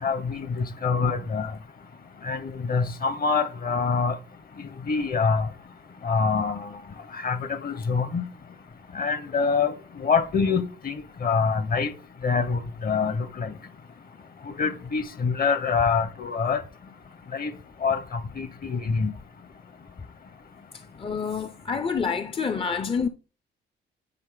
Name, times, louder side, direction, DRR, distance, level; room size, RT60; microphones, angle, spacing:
voice 1, 0.0-1.5 2.2-4.2 4.9-5.5 6.0-6.7 7.1-8.3 8.9-11.9 12.2-13.5 14.6-16.6 17.3-17.5 17.8-19.1, left 5 dB, 50° left, 1.1 m, -25 dB
voice 2, 21.0-23.1, left 6 dB, 25° left, 0.6 m, -27 dB
9.7 x 4.3 x 3.8 m
cardioid pair, 90°, 20 cm